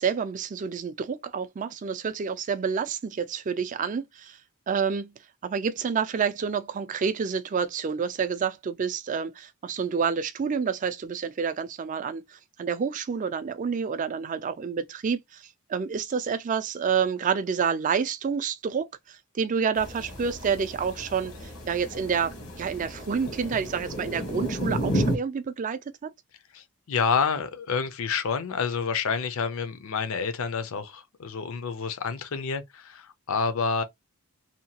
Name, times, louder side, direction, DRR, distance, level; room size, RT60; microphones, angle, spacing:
voice 1, 0.0-4.4 4.7-5.1 5.4-26.1, right 6 dB, 35° right, 0.3 m, -29 dB
sound 1, 19.7-25.2, equal, 80° left, 1.1 m, -32 dB
voice 2, 26.5-33.8, left 5 dB, 65° left, 0.5 m, -28 dB
2.8 x 2.2 x 2.8 m
head